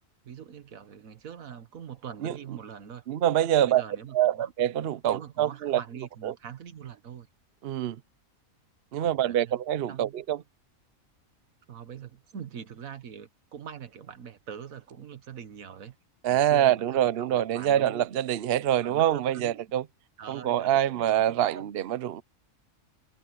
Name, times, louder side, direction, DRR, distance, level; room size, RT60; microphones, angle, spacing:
voice 1, 0.0-3.1 3.6-4.5 5.1-7.3 9.0-9.6 9.9-10.1 11.7-16.0 16.3-18.0 18.8-19.6 20.2-21.7, right 8 dB, 85° right, 1.6 m, -43 dB
voice 2, 3.1-3.8 4.1-5.8 6.2-6.3 7.6-8.0 8.9-10.4 16.2-19.8 20.3-22.2, right 11 dB, 55° right, 0.8 m, -25 dB
omnidirectional pair, 1.4 m